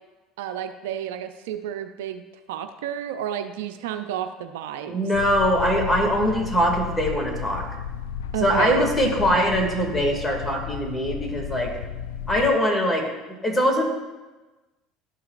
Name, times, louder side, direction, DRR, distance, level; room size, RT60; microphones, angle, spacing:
voice 1, 0.4-2.2 2.5-5.1 8.3-8.9, right 10 dB, 75° right, 8 dB, 0.4 m, -31 dB
voice 2, 4.9-7.6 8.4-11.8 12.3-13.1 13.4-13.8, equal, 15° left, 0 dB, 2.2 m, -22 dB
sound 1, 5.1-12.5, left 8 dB, 75° left, 0.4 m, -33 dB
12.0 x 5.7 x 2.5 m, 1.2 s
hypercardioid pair, 70°, 0 cm